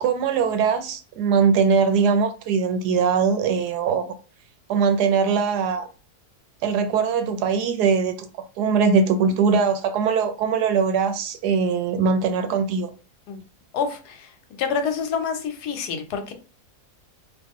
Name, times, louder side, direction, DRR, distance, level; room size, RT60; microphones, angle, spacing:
voice 1, 0.0-4.1 4.7-5.9 6.6-8.1 8.6-12.9, right 5 dB, 90° right, 1.1 m, -21 dB
voice 2, 13.7-14.3 14.6-16.3, left 6 dB, 80° left, 1.2 m, -27 dB
3.0 x 2.5 x 3.5 m
omnidirectional pair, 1.7 m